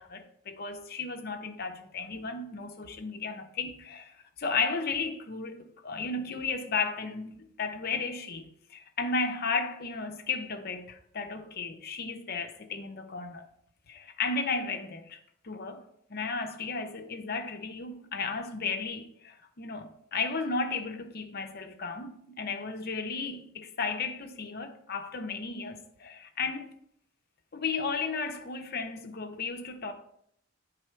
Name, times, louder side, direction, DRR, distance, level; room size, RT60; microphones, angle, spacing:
voice 1, 0.0-8.4 8.7-13.5 13.9-15.2 15.4-26.7 27.5-29.9, left 4 dB, 50° left, 0.7 m, -34 dB
9.6 x 4.1 x 4.4 m
head